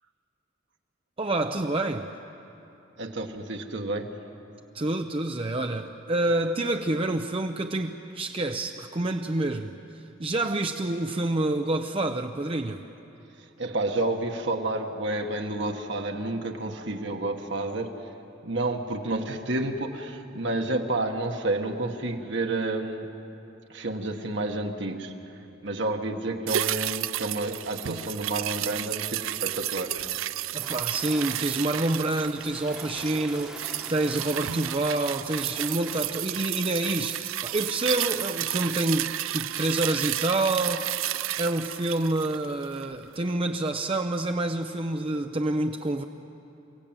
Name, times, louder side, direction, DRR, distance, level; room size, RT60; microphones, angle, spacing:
voice 1, 1.2-2.1 4.7-12.8 30.5-40.9 41.4-46.0, right 2 dB, 30° right, 5 dB, 0.6 m, -28 dB
voice 2, 3.0-4.1 13.4-18.1 18.4-23.1 23.7-25.1 25.6-30.0, right 2 dB, 60° right, 3 dB, 1.5 m, -30 dB
sound 1, 26.5-43.0 43.3-43.4, right 13 dB, 85° right, 0.5 m, -32 dB
sound 2, 30.6-36.1, right 1 dB, 5° right, 1.2 m, -45 dB
29.0 x 17.0 x 8.9 m, 2.9 s
head